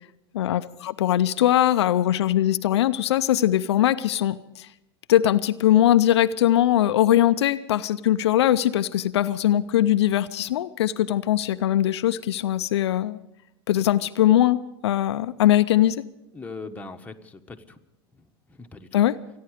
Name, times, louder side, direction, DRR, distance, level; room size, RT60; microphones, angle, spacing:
voice 1, 0.3-4.7 5.1-13.2 13.7-16.0 18.9-19.2, left 12 dB, 85° left, 11 dB, 0.5 m, -21 dB
voice 2, 16.3-17.8 18.1-19.1, left 3 dB, 10° left, 3 dB, 1.4 m, -41 dB
28.0 x 10.5 x 5.0 m, 0.89 s
hypercardioid pair, 100°, 14 cm